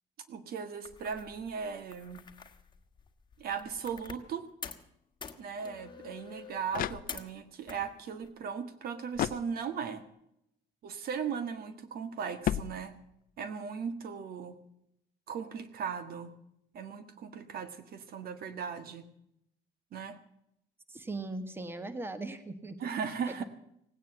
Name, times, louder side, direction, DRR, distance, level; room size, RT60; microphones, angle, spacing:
voice 1, 0.3-2.2 3.4-4.5 5.4-10.0 10.8-12.9 13.4-14.6 15.3-16.3 16.7-19.1 19.9-20.2 22.8-23.4, right 6 dB, 60° right, 10 dB, 1.6 m, -37 dB
sound 1, 0.9-4.3 4.6-4.9 5.2-7.4 7.7-8.3, left 6 dB, 25° left, 1.6 m, -47 dB
sound 2, 6.3-7.6 9.1-10.0 12.4-13.4, left 12 dB, 55° left, 0.6 m, -36 dB
voice 2, 20.9-22.8 23.3-23.4, right 2 dB, 15° right, 11 dB, 1.4 m, -39 dB
17.5 x 9.2 x 7.9 m, 0.77 s
cardioid pair, 110°, 17 cm